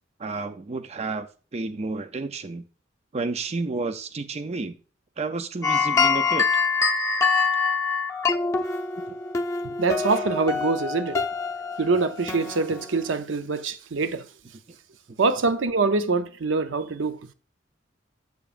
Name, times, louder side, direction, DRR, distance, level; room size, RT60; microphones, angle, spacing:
voice 1, 0.2-1.3 1.5-2.6 3.1-4.7 5.2-6.5 9.1-9.2, right 3 dB, 35° right, 0.5 m, -30 dB
sound 1, 5.6-13.2, left 5 dB, 15° left, 0.8 m, -25 dB
voice 2, 9.8-11.3 11.8-14.2 15.2-17.2, right 3 dB, 90° right, 0.6 m, -24 dB
7.9 x 7.0 x 2.5 m
head